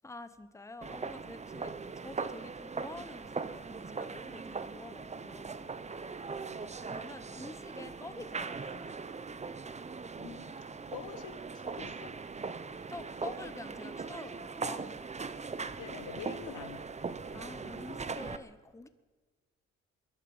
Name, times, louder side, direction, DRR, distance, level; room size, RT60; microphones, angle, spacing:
voice 1, 0.0-5.7 6.8-8.8 12.9-14.9 17.3-18.9, left 2 dB, 10° left, 12 dB, 0.9 m, -48 dB
sound 1, 0.8-18.4, right 4 dB, 25° right, 0.8 m, -40 dB
voice 2, 6.3-6.7 10.2-12.2 15.8-16.9, left 10 dB, 85° left, 12 dB, 1.2 m, -47 dB
22.5 x 11.0 x 5.5 m, 1.4 s
cardioid pair, 90°, 30 cm